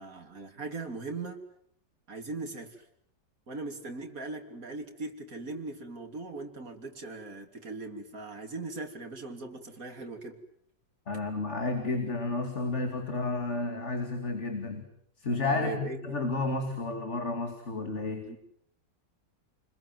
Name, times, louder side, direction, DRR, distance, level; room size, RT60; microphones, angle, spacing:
voice 1, 0.0-1.4 2.1-2.8 3.5-10.4 15.5-16.2 18.3-18.4, right 3 dB, 50° right, 4 dB, 3.6 m, -39 dB
voice 2, 11.1-14.9 15.2-18.3, left 3 dB, 40° left, 6 dB, 2.8 m, -31 dB
29.5 x 21.5 x 9.3 m, 0.70 s
omnidirectional pair, 1.9 m